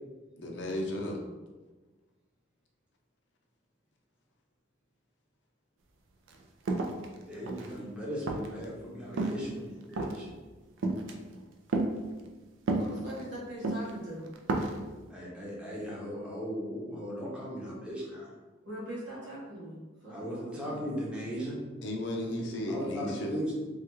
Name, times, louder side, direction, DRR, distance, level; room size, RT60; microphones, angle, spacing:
voice 1, 0.3-1.2 21.8-23.3, left 1 dB, 65° left, 1 dB, 0.5 m, -34 dB
sound 1, 6.3-6.4 6.7-7.8 8.3-8.6 9.1-9.5 9.9-10.3 10.8-11.1 11.7-11.9 12.7-13.2 13.6-13.9 14.3-14.8, right 2 dB, 80° right, 0.4 m, -30 dB
voice 2, 7.3-10.3 15.1-18.3 20.1-21.6 22.7-23.5, equal, 5° right, -6 dB, 0.7 m, -37 dB
voice 3, 12.7-14.3 18.6-20.8, equal, 65° right, -7 dB, 1.2 m, -42 dB
3.4 x 2.3 x 2.9 m, 1.2 s
head